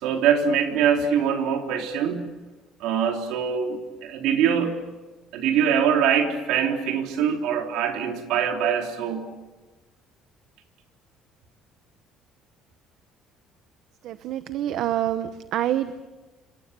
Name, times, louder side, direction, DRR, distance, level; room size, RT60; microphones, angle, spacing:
voice 1, 0.0-2.3 2.8-4.8 5.3-9.3, right 7 dB, 85° right, 3 dB, 3.6 m, -23 dB
voice 2, 14.0-16.0, right 12 dB, 65° right, 12 dB, 0.9 m, -27 dB
28.0 x 26.5 x 6.9 m, 1.2 s
cardioid pair, 145°, 0 cm